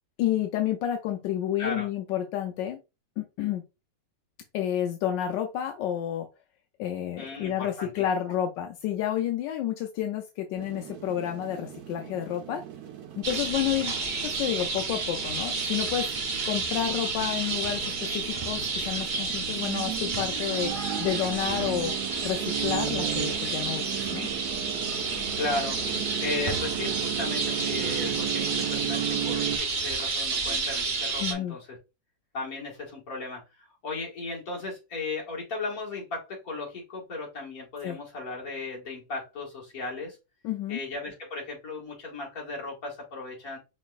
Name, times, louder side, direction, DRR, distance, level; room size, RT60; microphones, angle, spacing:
voice 1, 0.2-2.8 3.2-3.6 4.5-6.3 6.8-12.6 13.2-13.9 14.2-16.1 16.4-21.9 22.2-24.3 31.2-31.6 37.8-38.0 40.4-40.8, left 11 dB, 85° left, 5 dB, 1.3 m, -30 dB
voice 2, 7.1-8.0 25.1-25.8 26.2-31.8 32.3-40.2 40.7-43.6, left 3 dB, 55° left, -3 dB, 2.2 m, -36 dB
sound 1, 10.6-29.6, right 11 dB, 65° right, 1.2 m, -36 dB
sound 2, 13.2-31.3, right 4 dB, 45° right, 0.6 m, -30 dB
5.1 x 3.2 x 2.5 m, 0.27 s
omnidirectional pair, 1.9 m